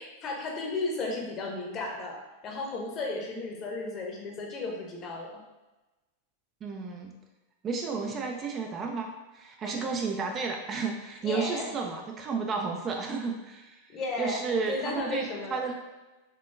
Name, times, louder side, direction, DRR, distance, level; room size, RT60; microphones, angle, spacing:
voice 1, 0.0-5.4 9.6-9.9 11.2-11.7 13.9-14.4 14.7-15.7, left 3 dB, 30° left, 0 dB, 0.9 m, -34 dB
voice 2, 6.6-7.1 7.6-15.7, right 4 dB, 25° right, 2 dB, 0.4 m, -32 dB
4.4 x 2.9 x 3.2 m, 1.1 s
figure-of-eight pair, 90°, 0 cm